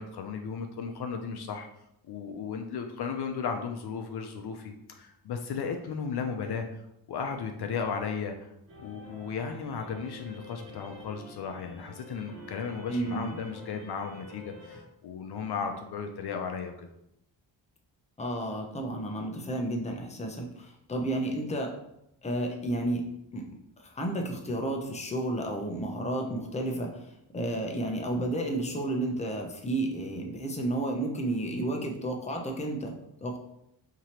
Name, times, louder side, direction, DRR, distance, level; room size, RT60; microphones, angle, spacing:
voice 1, 0.0-1.7 2.1-6.7 7.1-8.5 8.8-16.9, left 6 dB, 60° left, 5 dB, 0.6 m, -35 dB
sound 1, 8.7-14.8, left 1 dB, 35° right, 1.4 m, -48 dB
voice 2, 12.9-13.4 18.2-21.7 22.2-23.0 23.3-23.5 23.8-33.0 33.2-33.4, right 1 dB, 15° left, 2 dB, 0.7 m, -32 dB
4.7 x 2.9 x 2.9 m, 0.81 s
cardioid pair, 85°, 44 cm